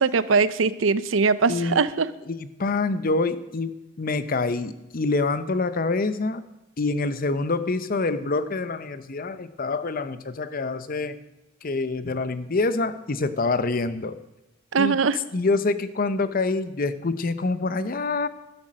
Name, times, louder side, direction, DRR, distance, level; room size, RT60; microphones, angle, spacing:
voice 1, 0.0-2.1 14.7-15.2, right 5 dB, 80° right, 15 dB, 0.6 m, -21 dB
voice 2, 1.5-1.8 2.3-6.4 6.8-11.2 11.6-14.2 14.8-15.0 15.3-18.3, left 3 dB, 45° left, 13 dB, 0.7 m, -26 dB
12.0 x 11.5 x 6.3 m, 0.96 s
head